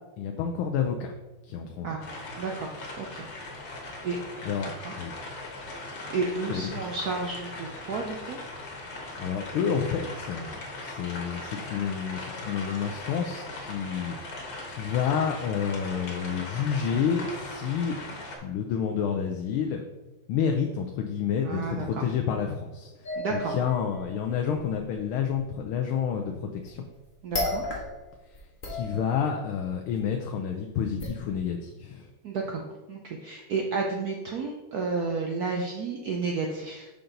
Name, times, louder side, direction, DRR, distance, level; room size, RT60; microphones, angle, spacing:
voice 1, 0.2-1.1 1.5-2.0 4.4-4.7 5.0-5.1 6.5-6.9 9.2-18.0 18.4-19.8 20.3-26.8 28.7-32.1, left 7 dB, 80° left, 3 dB, 1.5 m, -29 dB
sound 1, 2.0-18.4, left 2 dB, 60° left, 1.8 m, -39 dB
voice 2, 2.4-2.7 3.0-3.3 4.0-4.2 4.8-4.9 6.1-8.4 21.4-22.1 23.2-23.5 27.2-27.7 32.2-36.9, right 4 dB, 70° right, 1 dB, 0.9 m, -31 dB
sound 2, 23.1-25.4 26.6-27.0 27.3-28.1 28.3-29.5 29.9-30.0 31.0-31.1, left 1 dB, 30° left, 1.1 m, -34 dB
5.8 x 5.2 x 3.8 m, 1.1 s
omnidirectional pair, 2.3 m